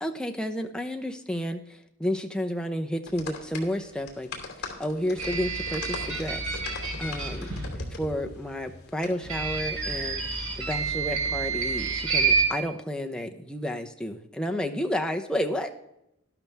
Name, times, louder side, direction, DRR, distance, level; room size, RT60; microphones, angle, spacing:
voice 1, 0.0-4.3 4.8-6.6 7.0-15.7, equal, 5° left, 3 dB, 0.8 m, -31 dB
sound 1, 3.1-9.1, left 3 dB, 50° left, 2.6 m, -40 dB
sound 2, 5.1-7.7 9.2-12.4, right 5 dB, 90° right, 3.5 m, -28 dB
12.5 x 12.0 x 3.4 m, 0.84 s
head